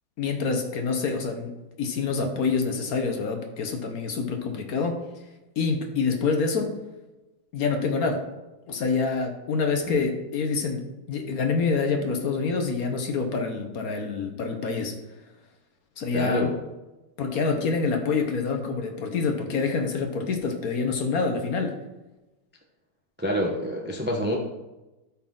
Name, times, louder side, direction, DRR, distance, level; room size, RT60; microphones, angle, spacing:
voice 1, 0.2-5.0 5.6-6.8 7.5-8.2 8.7-15.0 16.0-16.5 17.2-21.7, left 4 dB, 60° left, 5 dB, 1.2 m, -26 dB
voice 2, 16.1-16.6 23.2-24.4, equal, 10° right, 1 dB, 0.5 m, -27 dB
12.5 x 4.3 x 3.8 m, 1.0 s
omnidirectional pair, 1.9 m